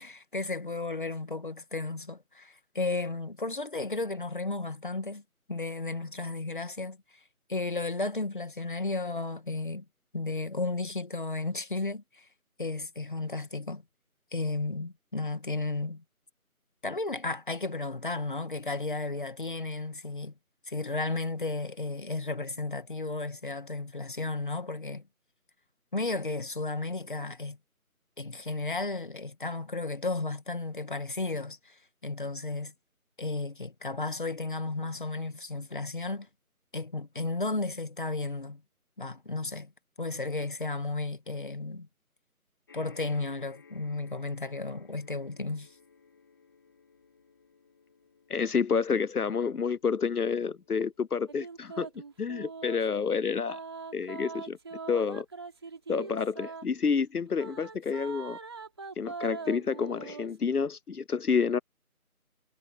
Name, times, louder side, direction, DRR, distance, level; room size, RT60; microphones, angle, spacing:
voice 1, 0.0-5.2 5.5-7.0 7.5-9.9 10.1-12.3 12.6-13.8 14.3-16.0 16.8-20.3 20.7-25.0 25.9-27.6 28.2-32.7 33.2-36.3 36.7-38.6 39.0-39.7 40.0-41.9 42.7-45.7, left 3 dB, 35° left, 2.1 m, -33 dB
sound 1, 42.7-57.2 58.0-58.1 58.3-58.4, left 5 dB, 15° left, 3.5 m, -61 dB
voice 2, 48.3-51.9 52.2-53.6 53.9-54.6 54.9-55.3 55.9-58.4 59.0-61.6, left 5 dB, 85° left, 0.9 m, -29 dB
sound 2, 51.3-52.8 53.5-56.6 57.3-60.4, right 4 dB, 20° right, 3.2 m, -42 dB
figure-of-eight pair, 170°, 44 cm